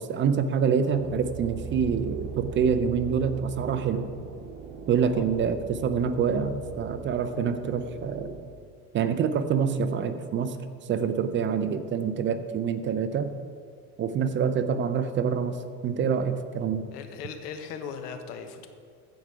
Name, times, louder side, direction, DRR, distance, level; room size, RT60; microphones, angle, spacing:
voice 1, 0.0-4.1 4.9-8.3 8.9-10.6 10.9-13.3 14.0-16.8, right 6 dB, 25° right, 10 dB, 0.4 m, -26 dB
sound 1, 0.9-8.4, right 6 dB, 55° right, 1.4 m, -40 dB
voice 2, 16.9-18.7, left 6 dB, 85° left, 7 dB, 1.2 m, -38 dB
15.0 x 5.1 x 4.8 m, 2.1 s
supercardioid pair, 115°, 46 cm